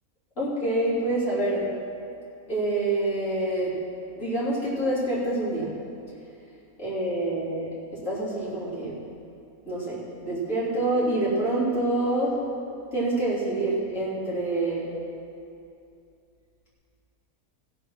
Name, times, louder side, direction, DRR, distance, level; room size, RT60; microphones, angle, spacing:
voice 1, 0.4-1.7 2.5-3.7 4.2-5.7 6.8-7.7 8.0-9.0 9.7-12.4 12.9-14.8, right 2 dB, 60° left, -8 dB, 3.4 m, -26 dB
16.0 x 7.1 x 5.8 m, 2.6 s
omnidirectional pair, 1.5 m